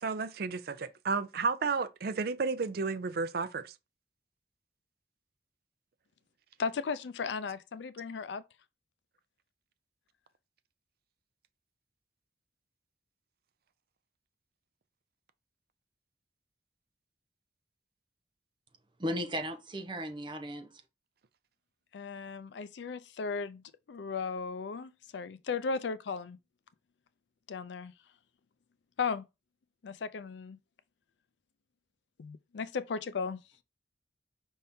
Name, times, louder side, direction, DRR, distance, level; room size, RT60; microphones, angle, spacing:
voice 1, 0.0-3.7, right 4 dB, 60° right, 0.5 m, -32 dB
voice 2, 6.6-8.4 21.9-26.4 27.5-27.9 29.0-29.2 29.8-30.6 32.2-33.4, left 5 dB, 75° left, 0.4 m, -36 dB
voice 3, 19.0-20.8, equal, 25° right, 0.9 m, -36 dB
5.5 x 3.6 x 2.7 m
head